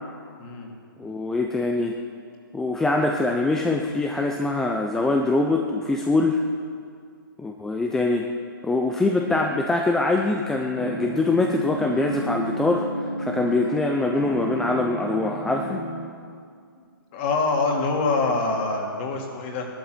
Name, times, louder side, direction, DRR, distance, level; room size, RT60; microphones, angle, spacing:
voice 1, 0.4-0.7 17.1-19.7, left 3 dB, 30° left, 1 dB, 2.5 m, -25 dB
voice 2, 1.0-2.0 2.5-6.4 7.4-8.3 8.6-15.8, left 2 dB, 5° left, 2 dB, 0.5 m, -23 dB
sound 1, 10.7-16.1, right 1 dB, 60° left, 5.7 m, -32 dB
16.0 x 12.0 x 7.7 m, 2.2 s
hypercardioid pair, 160°, 12 cm